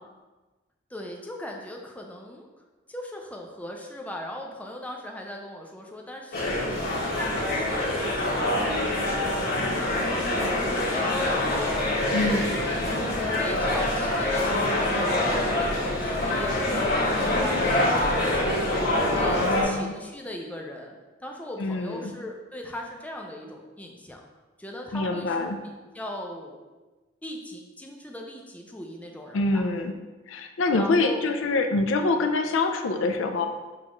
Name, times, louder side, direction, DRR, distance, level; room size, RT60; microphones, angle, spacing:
voice 1, 0.9-2.5 2.9-11.9 12.2-18.5 18.9-20.9 21.2-24.2 24.6-26.6 27.2-29.7 30.7-31.2, left 1 dB, 10° left, 1 dB, 0.4 m, -39 dB
sound 1, 6.3-19.6, left 1 dB, 50° left, 1.0 m, -25 dB
voice 2, 12.1-12.6 19.2-20.0 21.6-22.1 24.9-25.6 29.3-30.0 30.3-33.5, left 3 dB, 80° left, 6 dB, 0.4 m, -25 dB
6.1 x 2.4 x 3.0 m, 1.2 s
head